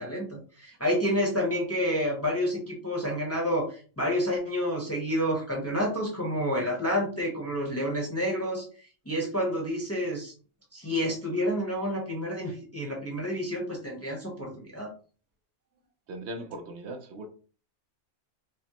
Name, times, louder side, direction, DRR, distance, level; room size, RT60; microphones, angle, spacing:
voice 1, 0.0-8.6 9.1-10.3 10.7-14.9, equal, 15° left, 0.8 m, -29 dB
voice 2, 16.1-17.3, right 1 dB, 65° right, 0.9 m, -38 dB
4.9 x 2.1 x 2.9 m
omnidirectional pair, 1.3 m